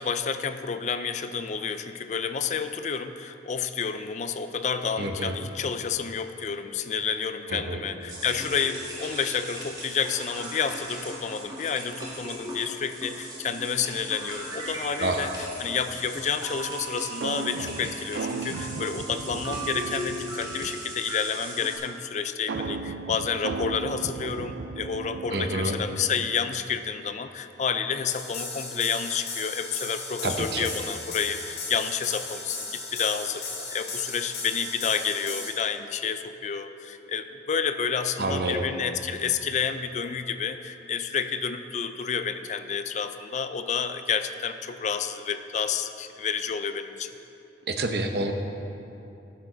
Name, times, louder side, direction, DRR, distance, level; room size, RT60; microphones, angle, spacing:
voice 1, 0.0-47.1, left 6 dB, 40° left, 10 dB, 0.4 m, -30 dB
voice 2, 5.0-5.3 7.5-7.8 15.0-15.3 25.3-25.7 30.2-30.7 38.2-38.6 47.7-48.3, right 2 dB, 60° right, 5 dB, 0.8 m, -28 dB
sound 1, 8.1-21.8, right 1 dB, 20° right, 1.9 m, -38 dB
sound 2, 17.2-20.9 22.5-26.1, right 4 dB, 75° right, 0.4 m, -36 dB
sound 3, 28.1-35.5, left 3 dB, 70° left, 1.9 m, -36 dB
13.0 x 7.1 x 3.9 m, 2.8 s
head